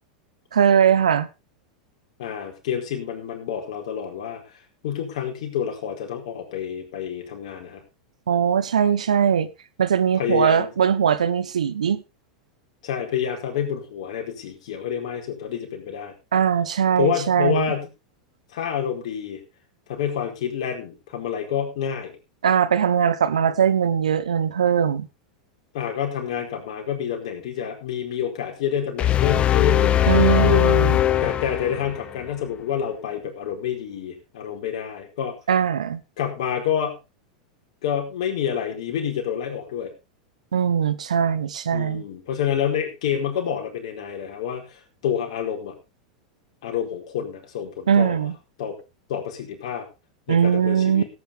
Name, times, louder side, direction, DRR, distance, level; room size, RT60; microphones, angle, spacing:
voice 1, 0.5-1.3 8.3-9.5 9.8-12.0 16.3-17.7 22.4-25.1 30.1-31.0 35.5-36.0 40.5-42.0 47.9-48.3 50.3-51.0, right 8 dB, 85° right, 1.1 m, -20 dB
voice 2, 2.2-4.6 4.8-7.8 10.1-10.7 12.8-16.1 17.0-17.9 18.5-19.4 19.9-22.2 25.7-30.7 31.2-35.4 36.2-37.0 37.8-39.9 41.7-45.8 46.6-48.3 48.6-48.8 49.1-49.9 50.3-51.1, left 8 dB, 65° left, 4.5 m, -28 dB
sound 1, 29.0-32.2, left 12 dB, 30° left, 0.8 m, -20 dB
17.0 x 9.3 x 3.6 m
hypercardioid pair, 95°, 4 cm